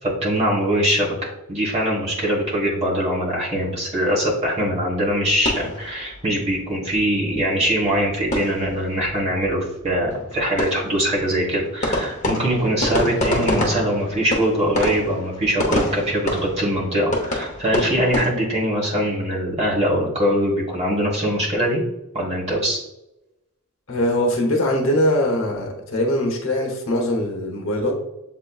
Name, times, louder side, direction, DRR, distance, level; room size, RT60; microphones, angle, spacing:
voice 1, 0.0-21.8 22.1-22.8, equal, 30° right, -4 dB, 1.5 m, -22 dB
sound 1, 5.1-6.6 6.9-7.0 7.3-7.4 7.7-9.1 9.4-9.5 9.8-18.3, left 1 dB, 35° left, 0.9 m, -27 dB
voice 2, 23.9-27.9, left 1 dB, 60° left, 0 dB, 1.0 m, -21 dB
7.5 x 2.9 x 2.4 m, 0.91 s
head